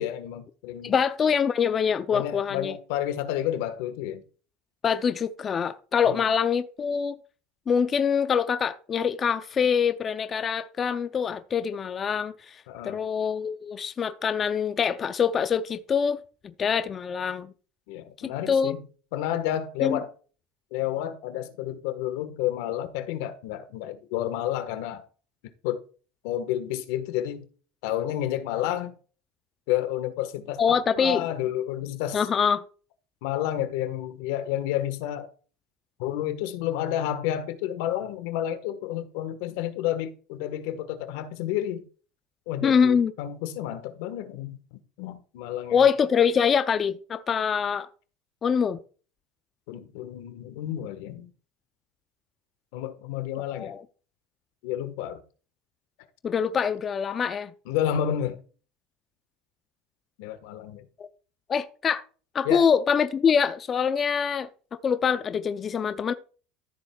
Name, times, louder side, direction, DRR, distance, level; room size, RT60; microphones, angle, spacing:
voice 1, 0.0-1.0 2.1-4.2 6.1-6.3 12.7-13.0 17.9-18.8 19.1-20.1 20.7-25.1 25.6-25.8 26.2-27.5 27.8-28.9 29.7-32.2 33.2-35.3 36.0-41.8 42.5-44.6 45.0-45.8 49.7-51.3 52.7-53.7 54.6-55.2 57.7-58.4 60.2-60.8 62.4-62.7, left 11 dB, 75° left, 1.4 m, -30 dB
voice 2, 0.8-2.8 4.8-7.2 7.7-17.5 18.5-18.7 19.8-20.0 30.6-31.3 32.1-32.6 42.6-43.1 45.7-47.9 48.4-48.8 53.5-53.8 56.2-57.5 61.0-61.1 61.5-62.0 62.3-64.5 64.8-66.1, left 7 dB, 25° left, 0.6 m, -24 dB
14.0 x 7.4 x 2.4 m
cardioid pair, 140°, 0 cm